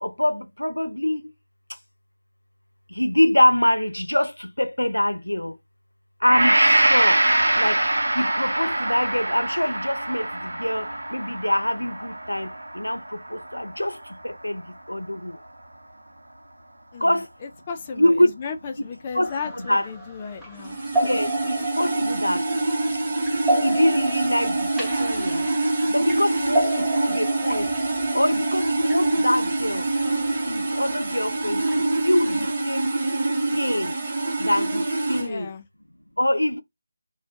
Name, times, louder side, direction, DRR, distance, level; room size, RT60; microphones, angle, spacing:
voice 1, 0.0-1.2 3.0-5.5 6.2-7.2 7.6-7.8 8.2-10.9 11.1-12.5 12.8-13.0 13.3-14.0 14.2-14.6 14.9-15.3 17.0-17.3 18.0-18.3 18.8-18.9 19.1-19.9 21.0-22.4 23.6-25.5 25.9-27.7 28.1-29.8 30.5-32.9 33.5-33.9 34.4-35.5 36.2-36.6, left 1 dB, 90° left, 0.4 m, -24 dB
Gong, 6.3-14.3, right 1 dB, 75° right, 0.5 m, -24 dB
voice 2, 16.9-20.8 35.2-35.6, left 5 dB, 25° left, 0.4 m, -35 dB
sound 1, 19.2-32.5, right 1 dB, 5° right, 0.7 m, -32 dB
sound 2, 20.6-35.3, right 2 dB, 35° right, 0.9 m, -25 dB
2.3 x 2.1 x 3.7 m
figure-of-eight pair, 160°, 0 cm